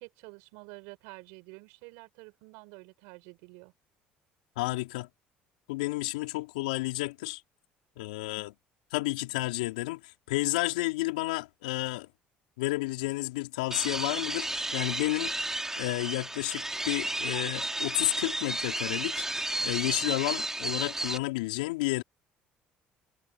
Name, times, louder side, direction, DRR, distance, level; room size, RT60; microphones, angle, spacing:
voice 1, 0.0-3.7, right 30 dB, 75° right, 4.8 m, -49 dB
voice 2, 4.6-5.1 5.7-7.4 8.0-8.5 8.9-12.1 12.6-15.3 15.8-19.2 19.6-22.0, left 21 dB, 85° left, 4.2 m, -31 dB
sound 1, 13.7-21.2, right 1 dB, 10° right, 5.0 m, -33 dB
hypercardioid pair, 60°, 4 cm